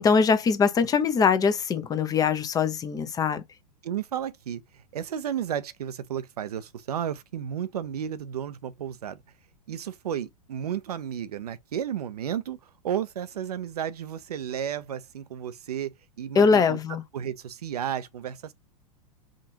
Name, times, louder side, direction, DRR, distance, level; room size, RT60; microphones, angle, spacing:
voice 1, 0.0-3.4 16.4-17.0, left 5 dB, 20° left, 0.6 m, -22 dB
voice 2, 3.8-4.6 4.9-9.2 9.7-12.6 12.8-15.9 16.2-16.8 17.1-18.5, right 9 dB, 70° right, 0.5 m, -32 dB
4.9 x 2.5 x 2.8 m
figure-of-eight pair, 100°, 20 cm